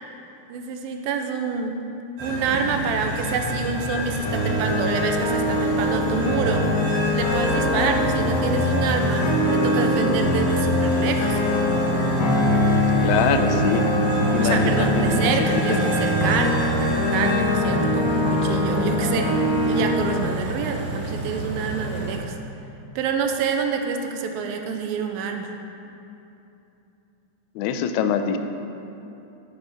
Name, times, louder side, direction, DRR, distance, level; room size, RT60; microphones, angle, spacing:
voice 1, 0.5-1.7 2.2-6.7 7.1-9.2 9.5-11.4 14.4-22.4 23.0-25.5, right 5 dB, 85° right, 5 dB, 2.6 m, -27 dB
sound 1, 2.2-22.1, right 1 dB, 65° right, 4.3 m, -30 dB
sound 2, 4.3-20.2, left 1 dB, 55° left, 2.2 m, -22 dB
voice 2, 13.0-13.9 14.3-15.3 15.7-15.8 27.6-28.4, left 7 dB, 90° left, 8 dB, 1.6 m, -23 dB
10.0 x 9.7 x 5.0 m, 2.8 s
omnidirectional pair, 4.1 m